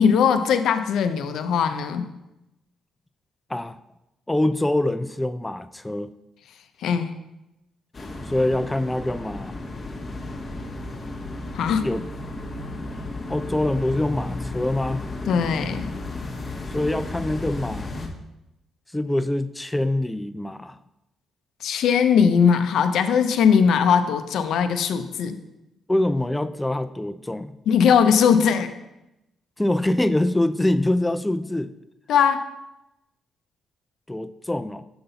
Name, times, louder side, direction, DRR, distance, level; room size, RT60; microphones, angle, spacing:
voice 1, 0.0-2.1 6.8-7.1 11.5-11.8 15.3-15.8 21.6-25.4 27.7-28.7 32.1-32.5, left 7 dB, 75° left, 9 dB, 0.5 m, -19 dB
voice 2, 4.3-6.1 8.3-9.6 11.8-12.0 13.3-15.0 16.7-17.9 18.9-20.8 25.9-27.6 29.6-31.7 34.1-34.8, left 1 dB, 10° left, 12 dB, 0.3 m, -24 dB
sound 1, 7.9-18.1, left 2 dB, 35° left, 0.9 m, -33 dB
6.8 x 4.0 x 3.9 m, 0.92 s
cardioid pair, 90°, 0 cm